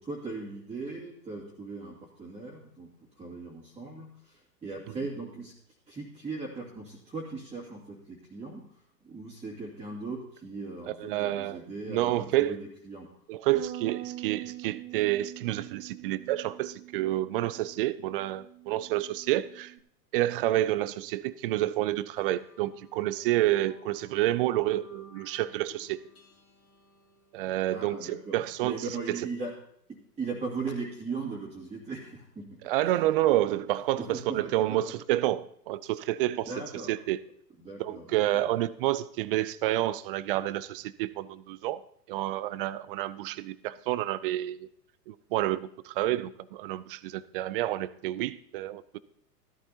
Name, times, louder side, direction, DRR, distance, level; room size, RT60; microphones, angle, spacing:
voice 1, 0.0-2.9 3.2-5.5 5.9-12.6 12.8-13.1 27.7-29.5 30.2-32.7 34.0-34.4 34.7-34.8 36.4-36.9 37.6-38.5, right 3 dB, 15° right, -6 dB, 2.4 m, -38 dB
voice 2, 10.9-11.6 11.9-12.6 13.3-19.7 20.1-26.0 27.3-29.2 32.6-36.5 36.9-37.2 37.8-41.8 42.1-44.7 45.1-48.8, right 14 dB, 35° right, 18 dB, 0.4 m, -29 dB
Bass guitar, 13.5-19.8, right 14 dB, 85° right, 1.1 m, -44 dB
sound 1, 22.1-29.0, left 2 dB, 30° left, 3.1 m, -58 dB
13.5 x 13.0 x 2.8 m, 0.67 s
hypercardioid pair, 110°, 48 cm